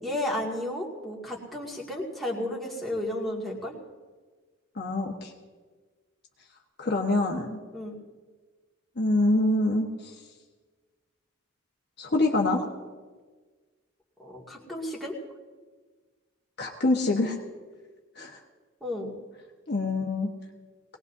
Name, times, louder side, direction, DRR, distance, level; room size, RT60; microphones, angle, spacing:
voice 1, 0.0-3.7 7.7-7.9 14.2-15.1 18.8-19.2, left 1 dB, ahead, -5 dB, 2.2 m, -33 dB
voice 2, 4.7-5.3 6.8-7.6 9.0-10.1 12.0-12.6 16.6-17.4 18.2-18.4 19.7-20.3, left 2 dB, 50° left, 0 dB, 1.3 m, -25 dB
22.5 x 18.5 x 2.7 m, 1.4 s
head